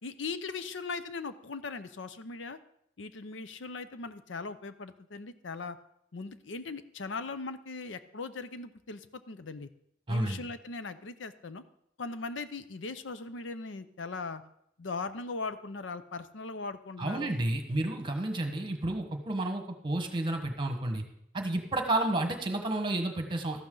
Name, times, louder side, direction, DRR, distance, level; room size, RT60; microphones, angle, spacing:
voice 1, 0.0-2.6 3.0-5.8 6.1-9.7 10.1-11.6 12.0-14.4 14.8-17.3, left 4 dB, 75° left, 12 dB, 0.6 m, -39 dB
voice 2, 10.1-10.4 17.0-21.0 21.3-23.6, right 1 dB, 25° right, 5 dB, 1.4 m, -31 dB
13.5 x 11.5 x 3.9 m, 0.74 s
head